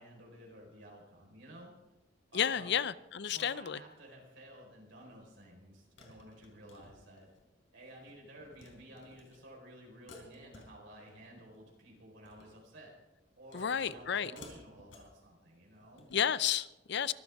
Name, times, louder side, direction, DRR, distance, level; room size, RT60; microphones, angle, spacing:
voice 1, 0.0-1.7 2.3-2.7 3.3-7.3 7.7-12.9 13.4-16.1, right 1 dB, 70° right, -2 dB, 4.6 m, -53 dB
voice 2, 2.3-3.8 13.5-14.3 16.1-17.1, left 8 dB, 60° left, 17 dB, 0.5 m, -32 dB
sound 1, 5.1-5.2 6.0-7.5 7.8-8.1 8.4-8.7 9.0-9.4 10.1-11.1 11.4-11.7 12.1-12.6 13.5-14.1 14.4-15.2 15.8-16.2, left 2 dB, 80° left, 4.1 m, -56 dB
23.5 x 13.5 x 3.6 m, 0.99 s
head